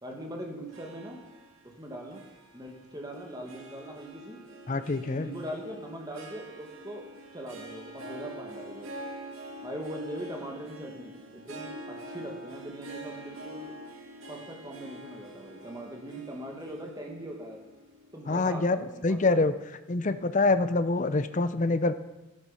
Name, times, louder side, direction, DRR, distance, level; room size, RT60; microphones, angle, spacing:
voice 1, 0.0-1.2 1.6-2.2 2.5-4.4 5.0-7.1 7.3-8.9 9.6-13.7 14.3-17.6 18.1-19.4, right 1 dB, 15° right, 1 dB, 1.9 m, -41 dB
Harp, 0.7-19.1, right 1 dB, 65° right, 2.0 m, -46 dB
voice 2, 4.7-5.3 18.3-19.5 19.9-21.9, left 3 dB, 35° left, 12 dB, 0.6 m, -25 dB
12.5 x 11.0 x 5.7 m, 1.1 s
head